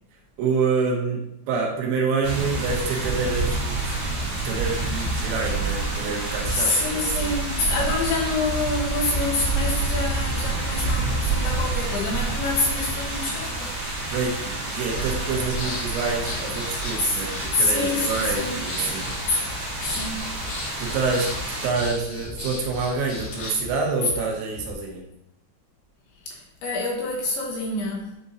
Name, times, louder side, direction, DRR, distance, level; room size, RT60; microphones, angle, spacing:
voice 1, 0.4-3.8 4.4-7.4 14.1-19.6 20.8-21.3 21.6-25.0, right 4 dB, 85° right, 0 dB, 3.3 m, -27 dB
sound 1, 2.2-21.7, right 2 dB, 45° right, 2.7 m, -28 dB
voice 2, 6.5-13.7 17.0-17.2 17.5-18.6 19.3-19.4 19.8-20.4 24.0-24.1 26.3-28.1, left 2 dB, 75° left, -2 dB, 2.5 m, -26 dB
Breathing, 14.8-23.7, left 2 dB, 55° left, 3.5 m, -36 dB
sound 2, 17.6-24.7, left 2 dB, 70° right, 3.8 m, -41 dB
9.5 x 4.1 x 2.6 m, 0.81 s
omnidirectional pair, 5.3 m